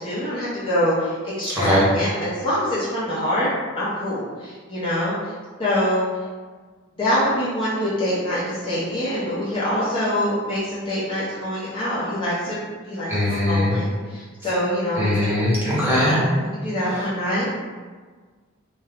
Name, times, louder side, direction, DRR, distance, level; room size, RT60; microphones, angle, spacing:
voice 1, 0.0-3.5 3.8-5.3 5.6-6.1 7.0-12.6 12.9-17.5, equal, 25° left, -9 dB, 0.6 m, -25 dB
voice 2, 1.5-1.9 13.1-13.7 15.0-16.2 16.9-17.1, left 1 dB, 10° right, -9 dB, 0.9 m, -21 dB
2.4 x 2.2 x 3.5 m, 1.5 s
head